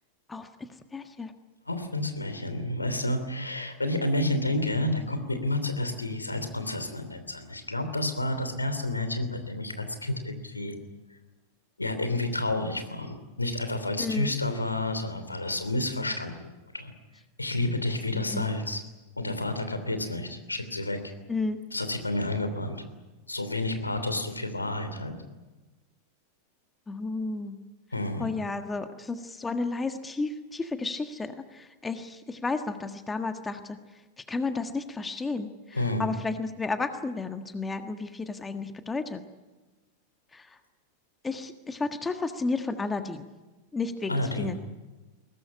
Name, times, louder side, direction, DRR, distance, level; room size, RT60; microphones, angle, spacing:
voice 1, 0.9-1.3 14.0-14.3 18.1-18.5 21.3-21.6 26.9-27.6 28.2-33.8 34.3-39.2 40.3-40.5 41.2-43.3 43.7-44.6, left 3 dB, 10° left, 8 dB, 1.6 m, -32 dB
voice 2, 1.7-10.7 11.8-16.9 17.4-18.8 19.2-21.0 21.7-22.8 23.3-25.1 27.9-28.3 35.7-36.1 44.1-44.5, left 1 dB, 80° left, 8 dB, 3.0 m, -30 dB
22.5 x 18.5 x 9.9 m, 1.2 s
figure-of-eight pair, 90°, 0 cm